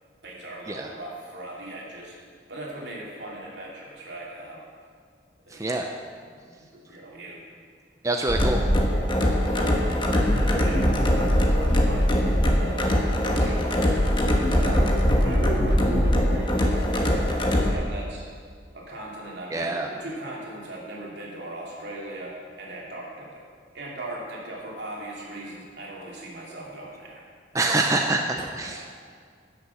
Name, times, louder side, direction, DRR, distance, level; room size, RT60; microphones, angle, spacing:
voice 1, 0.2-2.2 2.5-4.7 5.4-5.9 6.2-7.4 8.4-8.5 9.5-12.1 12.5-13.8 14.5-18.3 18.7-23.5 23.7-27.2 27.5-27.8 28.6-28.9, right 1 dB, 70° right, -4 dB, 3.0 m, -38 dB
voice 2, 5.5-5.9 8.0-8.6 19.5-19.9 27.5-28.9, right 2 dB, 20° right, 3 dB, 0.5 m, -25 dB
sound 1, 8.3-17.7, equal, 25° left, 1.2 m, -22 dB
11.0 x 6.7 x 7.1 m, 2.1 s
head